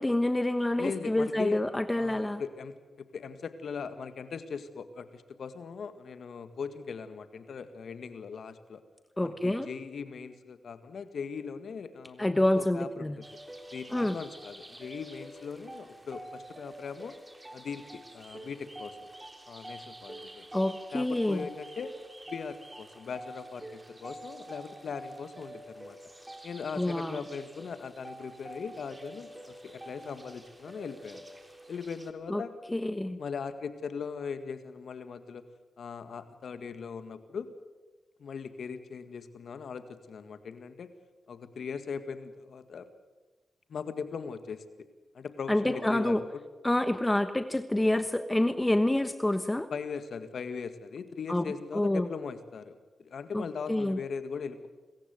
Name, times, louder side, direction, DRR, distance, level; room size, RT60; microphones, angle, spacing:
voice 1, 0.0-2.4 9.2-9.7 12.2-13.2 13.9-14.2 20.5-21.5 26.8-27.2 32.3-32.4 32.7-33.2 45.5-46.2 46.6-49.7 51.3-51.5 51.7-52.1 53.3-54.0, left 1 dB, 15° left, 10 dB, 1.2 m, -27 dB
voice 2, 0.8-1.6 1.9-8.8 9.2-12.3 12.5-13.2 13.7-17.2 17.5-19.1 19.5-20.5 20.9-22.0 22.3-26.0 26.4-31.2 31.7-32.5 33.2-35.4 35.8-37.5 38.2-40.9 41.3-42.9 43.7-44.9 45.1-46.4 49.7-54.7, left 6 dB, 70° left, 11 dB, 1.9 m, -39 dB
sound 1, 13.2-32.1, right 1 dB, 20° right, 3.4 m, -47 dB
26.0 x 15.0 x 9.3 m, 1.3 s
supercardioid pair, 45°, 0 cm